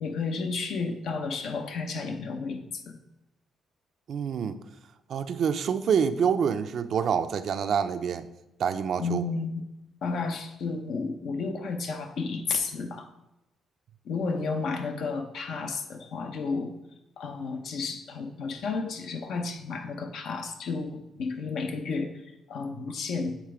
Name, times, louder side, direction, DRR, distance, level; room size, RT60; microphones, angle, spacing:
voice 1, 0.0-3.0 9.0-9.6 10.0-13.1 14.0-16.7 17.2-22.2 22.5-23.4, left 4 dB, 70° left, 5 dB, 0.8 m, -32 dB
voice 2, 4.1-4.6 5.1-8.3 8.6-9.2, right 7 dB, 60° right, 10 dB, 0.4 m, -27 dB
7.4 x 3.3 x 4.8 m, 0.92 s
cardioid pair, 90°, 0 cm